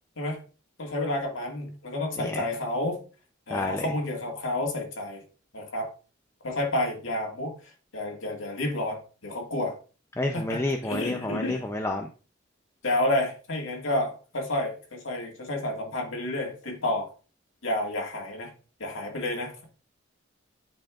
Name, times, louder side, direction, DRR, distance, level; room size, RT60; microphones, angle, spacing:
voice 1, 0.8-3.0 3.5-5.2 5.5-5.9 6.4-7.5 7.9-9.7 10.3-11.7 12.8-17.1 17.6-18.5 18.8-19.6, left 1 dB, 80° left, 0 dB, 1.9 m, -30 dB
voice 2, 3.5-3.9 10.2-12.1, left 2 dB, 15° left, 2 dB, 0.4 m, -29 dB
10.5 x 4.4 x 2.4 m, 0.36 s
head